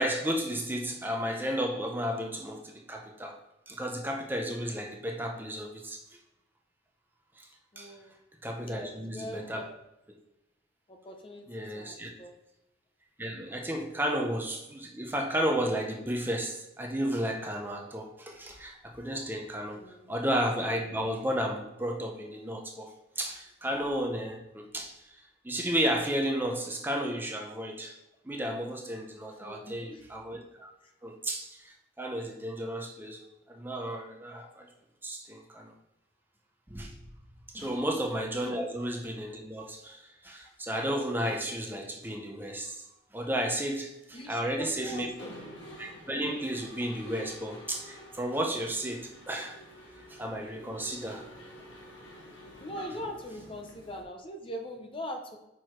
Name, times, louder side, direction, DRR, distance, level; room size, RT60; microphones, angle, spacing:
voice 1, 0.0-3.4 3.7-6.0 7.4-7.5 7.8-7.9 8.4-9.7 11.5-12.1 13.2-19.8 20.1-22.9 23.2-28.0 28.3-30.7 31.0-34.7 35.0-35.7 36.7-37.0 37.5-42.8 43.1-45.1 45.8-49.6 50.1-51.4, equal, 10° right, 1 dB, 0.6 m, -33 dB
voice 2, 7.7-8.2 8.5-9.7 10.9-12.3 19.7-20.1 27.8-27.9 29.3-30.1 30.8-30.9 37.5-37.8 40.4-40.6 44.1-45.3 52.6-55.4, equal, 25° left, 4 dB, 0.6 m, -42 dB
Mechanisms, 45.0-54.0, equal, 80° left, 1.4 m, -49 dB
6.2 x 4.6 x 4.5 m, 0.91 s
head